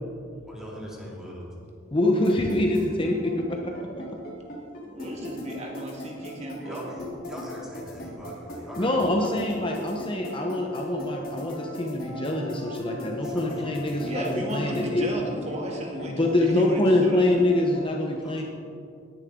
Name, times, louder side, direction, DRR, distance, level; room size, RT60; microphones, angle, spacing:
voice 1, 0.4-1.5 6.6-9.4 13.1-14.0 18.2-18.4, equal, 5° right, -5 dB, 2.9 m, -41 dB
voice 2, 1.9-4.1 8.8-15.1 16.1-18.4, left 1 dB, 25° left, 1 dB, 1.0 m, -25 dB
sound 1, 2.2-17.8, left 2 dB, 45° left, 3.1 m, -37 dB
voice 3, 4.9-6.8 14.0-17.3, right 1 dB, 35° right, 0 dB, 1.7 m, -34 dB
19.0 x 10.5 x 3.8 m, 2.4 s
head